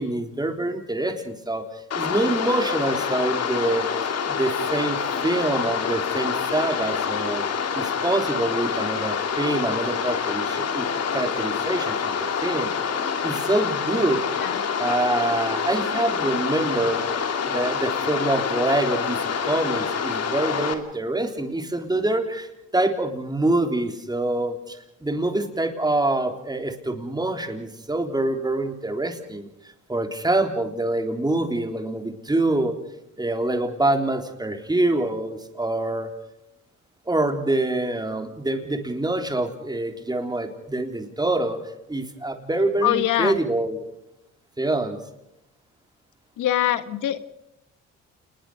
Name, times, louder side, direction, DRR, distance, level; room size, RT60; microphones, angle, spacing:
voice 1, 0.0-7.5 7.7-12.1 12.4-12.7 13.2-14.2 14.8-17.1 17.5-29.5 29.9-32.8 33.2-36.1 37.1-41.6 41.9-43.8 44.6-45.0, right 2 dB, 15° right, 5 dB, 3.7 m, -25 dB
sound 1, 1.9-20.7, left 6 dB, 55° left, 3.0 m, -26 dB
voice 2, 42.8-43.4 46.4-47.2, left 13 dB, 85° left, 12 dB, 1.6 m, -23 dB
29.0 x 21.0 x 5.0 m, 0.83 s
cardioid pair, 90°, 30 cm